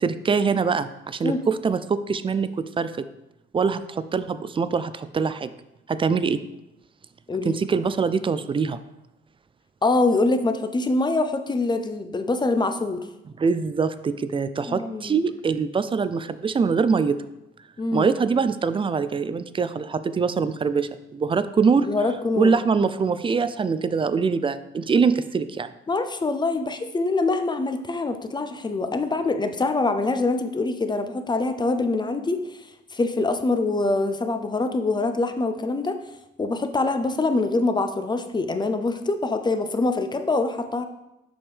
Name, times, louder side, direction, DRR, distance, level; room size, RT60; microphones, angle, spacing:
voice 1, 0.0-3.1 3.5-5.5 5.9-6.4 7.4-8.8 13.4-17.2 17.9-21.9 22.4-25.7, right 5 dB, 25° right, 13 dB, 0.4 m, -23 dB
voice 2, 7.3-7.6 9.8-13.1 14.7-15.2 17.8-18.1 21.8-22.5 25.9-32.6 32.9-36.0 36.4-40.8, left 3 dB, 20° left, 8 dB, 0.6 m, -24 dB
7.0 x 5.3 x 3.3 m, 0.91 s
cardioid pair, 90°, 20 cm